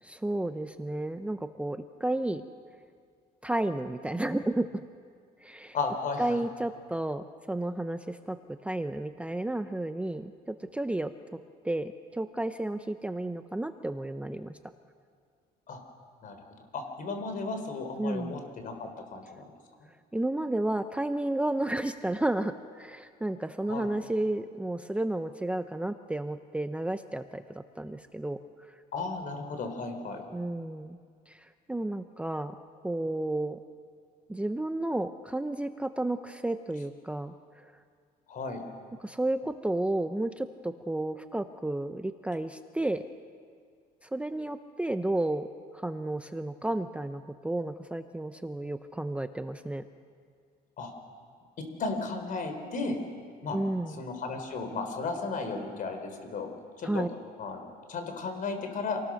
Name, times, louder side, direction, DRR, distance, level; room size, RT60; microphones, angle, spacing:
voice 1, 0.0-2.4 3.4-4.8 5.4-5.8 6.2-11.4 11.6-14.6 18.0-18.4 20.1-28.4 30.3-31.0 31.3-32.6 32.8-33.6 34.3-37.6 39.0-43.0 44.0-45.5 45.7-49.8 53.5-54.0 56.8-57.1, right 1 dB, 5° right, 9 dB, 0.7 m, -32 dB
voice 2, 5.7-6.4 15.7-15.8 16.2-16.4 16.7-19.5 23.7-23.9 28.9-30.2 38.3-38.6 50.8-50.9 51.6-53.0 53.4-53.6 54.0-56.5 56.8-57.0 57.4-59.0, left 4 dB, 55° left, 6 dB, 4.2 m, -34 dB
27.5 x 19.0 x 6.5 m, 2.1 s
cardioid pair, 110°, 17 cm